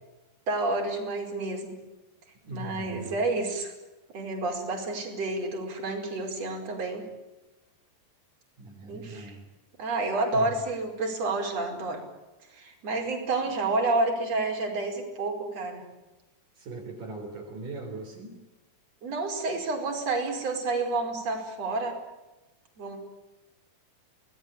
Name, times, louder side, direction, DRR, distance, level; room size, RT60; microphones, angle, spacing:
voice 1, 0.5-1.8 2.5-3.7 4.1-7.1 8.9-9.3 9.8-12.0 12.5-15.9 19.0-22.0 22.8-23.0, right 2 dB, 45° right, 2 dB, 5.9 m, -29 dB
voice 2, 2.4-3.2 8.6-9.4 10.3-10.5 16.6-18.4, right 3 dB, 65° right, 0 dB, 5.3 m, -40 dB
26.0 x 19.5 x 9.0 m, 1.0 s
omnidirectional pair, 4.1 m